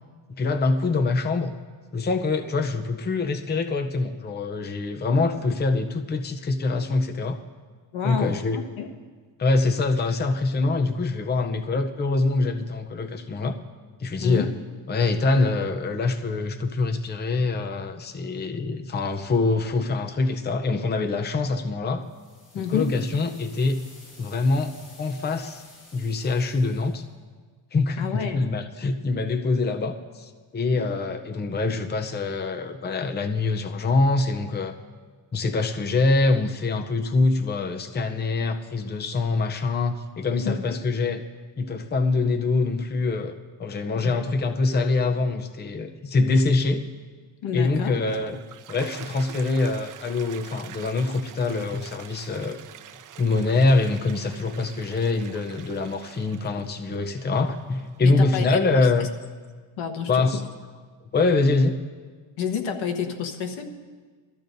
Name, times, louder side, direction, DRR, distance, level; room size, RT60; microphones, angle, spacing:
voice 1, 0.4-1.5 1.9-7.4 8.0-8.6 9.4-13.6 14.0-14.5 14.9-22.1 22.5-23.8 24.2-25.6 25.9-27.0 27.7-34.8 35.3-41.2 41.6-43.3 43.6-46.9 47.5-48.4 48.7-52.6 53.2-59.1 60.1-60.4 61.1-61.8, left 3 dB, 20° left, 6 dB, 0.6 m, -24 dB
voice 2, 7.9-8.9 14.2-14.5 22.5-22.9 28.0-28.4 30.7-30.9 40.4-40.8 43.9-44.2 47.4-48.0 58.0-58.9 59.8-60.4 62.4-63.7, left 7 dB, 90° left, 6 dB, 1.3 m, -30 dB
sound 1, 22.0-27.0, left 2 dB, 40° left, 3.7 m, -51 dB
Toilet flush, 47.7-58.0, right 10 dB, 45° right, 0.5 m, -45 dB
21.0 x 14.0 x 2.6 m, 1.5 s
cardioid pair, 125°, 47 cm